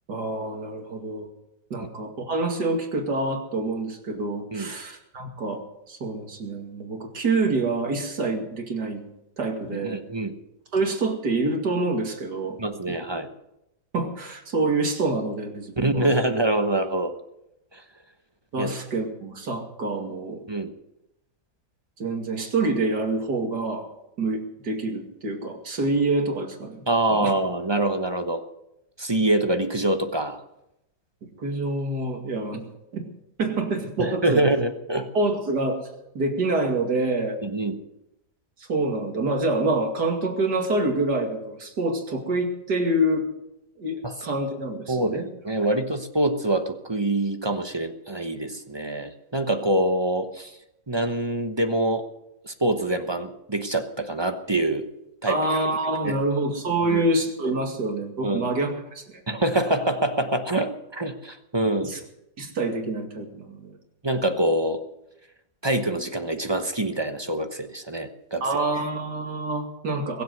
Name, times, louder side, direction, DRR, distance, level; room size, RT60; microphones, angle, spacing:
voice 1, 0.1-1.3 1.7-5.6 5.9-9.0 9.4-10.0 10.7-12.6 13.9-16.1 18.5-20.4 22.0-23.9 24.2-26.8 27.1-27.3 31.4-32.6 32.9-33.1 33.4-34.4 35.1-35.8 36.1-37.4 38.6-43.3 43.8-45.3 55.3-59.0 61.8-62.0 62.4-63.8 68.4-70.2, right 2 dB, 80° right, 3 dB, 2.9 m, -26 dB
voice 2, 9.8-10.3 12.6-13.3 15.8-17.1 17.7-17.8 18.6-18.7 20.5-20.7 26.9-28.4 29.0-30.4 34.0-35.1 37.4-37.8 44.0-44.1 44.9-50.6 50.9-52.1 52.4-54.9 55.2-55.6 56.0-56.2 56.9-57.1 58.2-58.5 59.3-61.9 64.0-64.8 65.6-68.4, right 1 dB, 20° right, 7 dB, 0.9 m, -25 dB
22.0 x 7.8 x 8.0 m, 0.85 s
omnidirectional pair, 1.7 m